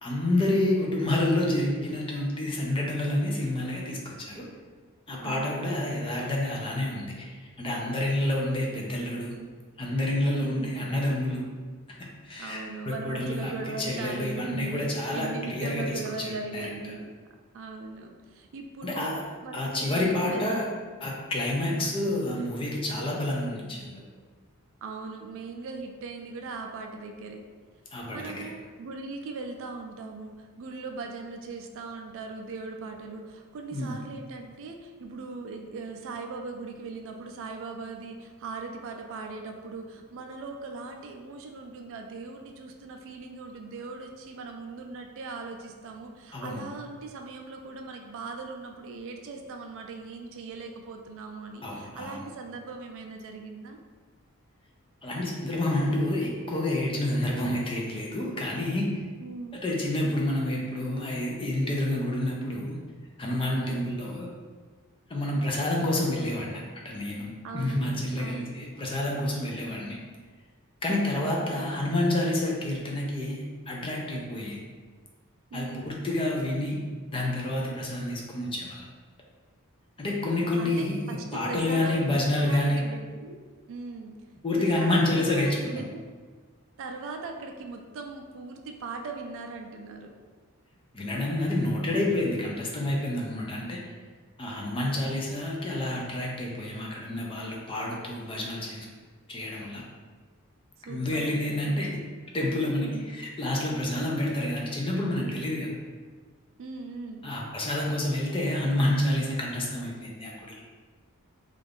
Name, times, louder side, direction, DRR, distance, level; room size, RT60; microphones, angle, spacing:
voice 1, 0.0-4.4 5.1-9.4 9.8-11.4 12.2-16.7 18.8-19.2 19.5-20.7 21.0-24.1 27.9-28.5 33.7-34.0 46.3-46.6 51.6-52.2 55.0-58.9 59.6-62.8 63.2-64.3 65.1-70.0 70.8-74.6 75.5-76.8 77.1-78.9 80.0-82.8 84.4-85.9 90.9-93.9 94.4-98.9 99.3-99.8 100.9-101.9 102.3-105.7 107.2-110.6, left 1 dB, 25° left, -2 dB, 0.4 m, -29 dB
voice 2, 5.2-5.7 9.2-9.5 10.4-10.8 12.4-17.1 17.5-20.5 21.6-21.9 24.8-27.4 28.1-53.8 59.2-59.6 63.6-63.8 67.4-68.5 71.2-71.7 75.5-75.9 80.6-83.4 83.7-84.1 84.6-86.0 86.8-90.1 94.8-95.1 100.8-101.9 102.8-103.2 106.6-107.2, right 3 dB, 60° right, 4 dB, 0.3 m, -39 dB
2.5 x 2.3 x 3.4 m, 1.5 s
head